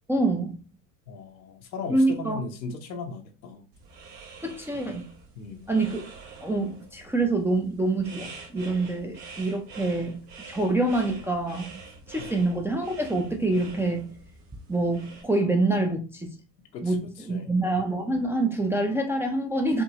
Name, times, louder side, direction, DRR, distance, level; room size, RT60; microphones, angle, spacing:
voice 1, 0.1-0.6 1.9-2.4 4.4-5.1 5.7-6.0 6.4-11.7 12.1-14.1 14.7-16.4 16.8-19.8, right 2 dB, 5° right, 0.4 m, -26 dB
voice 2, 1.1-3.6 5.4-5.7 12.2-12.4 16.7-17.6, left 4 dB, 90° left, 0.9 m, -38 dB
sound 1, 3.7-15.2, right 4 dB, 75° right, 1.5 m, -46 dB
4.7 x 2.7 x 2.8 m
hypercardioid pair, 80°, 50 cm